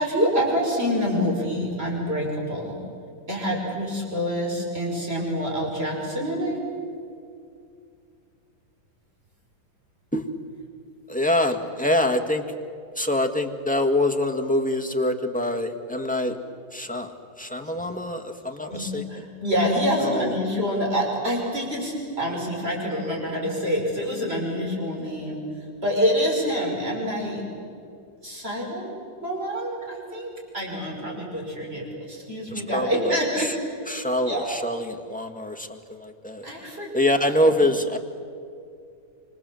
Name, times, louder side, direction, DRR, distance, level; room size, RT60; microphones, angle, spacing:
voice 1, 0.0-2.8 3.3-6.6 17.6-17.8 18.7-25.4 25.8-27.4 28.2-33.9 34.2-34.6 36.4-36.9 37.2-37.5, equal, 30° right, -1 dB, 6.0 m, -27 dB
voice 2, 11.1-12.4 12.9-16.4 16.7-19.0 20.0-20.3 32.5-33.5 33.9-36.5 36.9-38.0, left 1 dB, 5° left, 5 dB, 1.4 m, -25 dB
27.5 x 25.5 x 7.7 m, 2.4 s
omnidirectional pair, 2.1 m